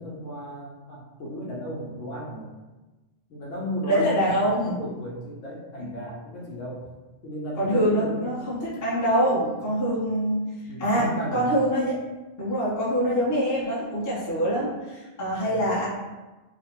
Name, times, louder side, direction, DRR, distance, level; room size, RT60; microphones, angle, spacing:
voice 1, 0.0-2.5 3.3-6.9 7.2-8.3 10.6-11.5 15.4-15.7, equal, 75° left, -4 dB, 1.0 m, -35 dB
voice 2, 3.8-4.7 7.6-10.4 10.8-12.0 12.4-15.9, equal, 20° left, -8 dB, 0.6 m, -24 dB
3.0 x 2.1 x 2.8 m, 1.1 s
omnidirectional pair, 1.4 m